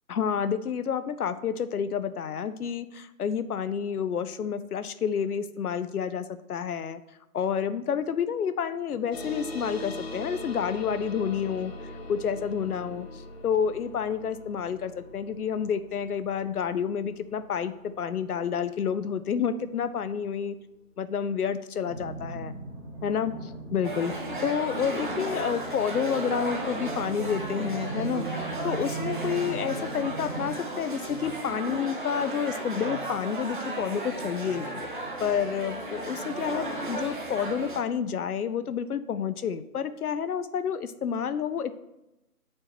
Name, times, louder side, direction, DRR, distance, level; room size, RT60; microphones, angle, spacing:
voice 1, 0.1-7.0 7.3-13.1 13.4-20.6 21.0-22.5 23.0-24.1 24.4-28.3 28.6-34.8 35.2-41.7, left 7 dB, 75° left, 12 dB, 0.6 m, -29 dB
sound 1, 9.1-20.0, left 1 dB, 40° left, 0.8 m, -42 dB
sound 2, 21.8-30.5, right 4 dB, 10° right, 1.0 m, -39 dB
sound 3, 23.8-37.8, right 2 dB, 35° right, 0.6 m, -35 dB
9.5 x 4.3 x 3.0 m, 0.92 s
figure-of-eight pair, 160°, 45 cm